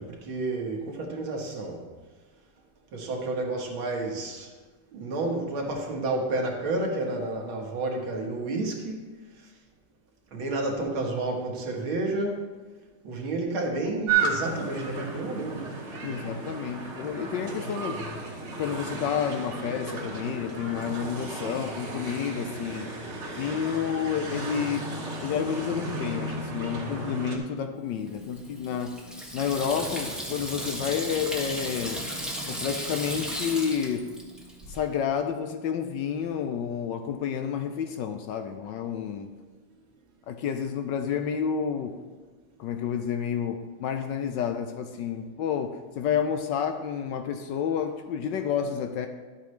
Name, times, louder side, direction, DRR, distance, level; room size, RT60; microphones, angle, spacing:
voice 1, 0.0-1.8 2.9-4.5 4.9-9.0 9.4-9.5 10.3-12.5 13.0-15.7, right 2 dB, 75° right, 1 dB, 2.1 m, -30 dB
sound 1, 14.1-27.4, right 4 dB, 40° right, 1.4 m, -33 dB
voice 2, 16.0-18.0 18.6-22.9 23.4-24.9 25.2-29.0 29.3-32.0 32.5-34.1 34.7-39.3 40.3-42.0 42.6-49.1, left 7 dB, 75° left, 7 dB, 1.1 m, -30 dB
Water tap faucet / Sink (filling or washing), 28.1-34.8, equal, ahead, 0.8 m, -35 dB
12.0 x 8.2 x 3.2 m, 1.4 s
omnidirectional pair, 2.2 m